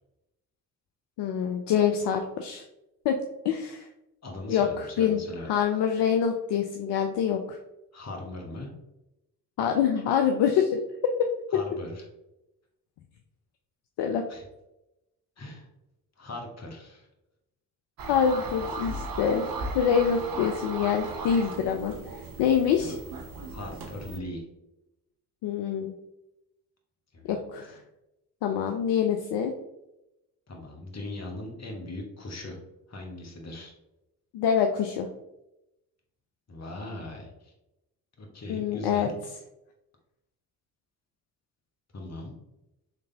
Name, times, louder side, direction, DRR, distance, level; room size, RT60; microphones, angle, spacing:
voice 1, 1.2-2.6 3.0-3.1 3.4-3.9 4.5-5.2 5.5-7.6 9.6-10.8 14.0-14.2 18.1-19.4 19.7-22.9 25.4-25.9 27.2-27.8 28.4-29.5 34.3-35.1 38.5-39.1, left 8 dB, 60° left, 4 dB, 0.6 m, -25 dB
voice 2, 4.2-5.5 7.9-8.7 11.5-12.0 14.3-14.4 15.4-15.7 16.2-17.1 22.8-22.9 23.5-24.4 27.1-27.7 30.5-32.6 32.9-33.7 36.5-37.5 38.2-39.1 41.9-42.3, left 1 dB, 35° left, 1 dB, 1.2 m, -39 dB
sound 1, 18.0-24.2, right 3 dB, 45° right, 0.8 m, -37 dB
4.0 x 3.2 x 2.8 m, 0.91 s
hypercardioid pair, 45°, 47 cm